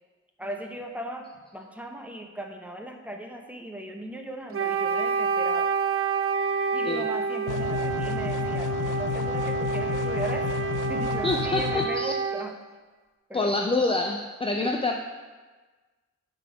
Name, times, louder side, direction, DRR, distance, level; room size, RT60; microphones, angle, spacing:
voice 1, 0.4-5.7 6.7-10.6 10.9-12.6 13.3-13.5 14.6-14.8, right 1 dB, 5° right, 3 dB, 0.8 m, -38 dB
Wind instrument woodwind instrument, 4.5-12.5, right 5 dB, 45° right, 0.4 m, -28 dB
sound 1, 7.5-11.9, left 10 dB, 85° left, 0.5 m, -31 dB
voice 2, 11.2-12.1 13.3-15.0, left 2 dB, 20° left, 2 dB, 0.4 m, -26 dB
6.6 x 4.0 x 5.9 m, 1.3 s
wide cardioid pair, 85°, 30 cm